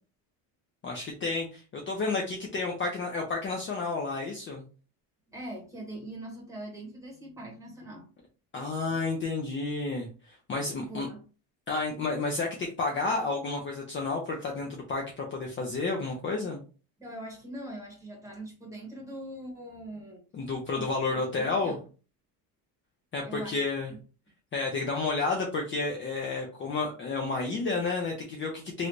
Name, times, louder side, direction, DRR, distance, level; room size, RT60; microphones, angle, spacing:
voice 1, 0.8-4.6 8.5-10.1 10.5-11.1 11.7-16.6 20.3-21.7 23.1-23.9 24.5-28.9, left 3 dB, 30° left, 0 dB, 0.7 m, -31 dB
voice 2, 5.3-8.1 8.9-9.0 10.8-11.2 17.0-20.2 20.7-21.8 23.2-23.6 23.8-24.0, right 1 dB, 10° right, -1 dB, 1.5 m, -42 dB
3.1 x 2.6 x 3.1 m, 0.35 s
cardioid pair, 130°, 41 cm